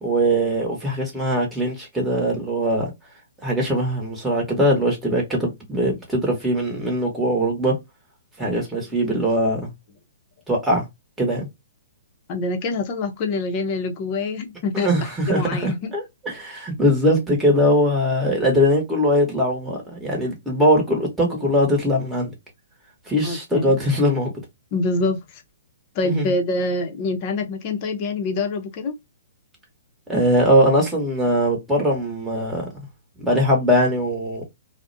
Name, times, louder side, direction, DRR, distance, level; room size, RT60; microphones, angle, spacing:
voice 1, 0.0-2.9 3.4-7.7 8.4-9.7 10.5-10.8 11.2-11.5 14.7-22.3 23.1-24.3 26.0-26.2 30.1-32.7 33.2-34.4, equal, 5° right, 1.0 m, -21 dB
voice 2, 12.3-15.9 23.2-23.8 24.7-25.4 25.9-28.9, left 3 dB, 35° left, 0.6 m, -25 dB
2.4 x 2.1 x 2.5 m
hypercardioid pair, 140°, 0 cm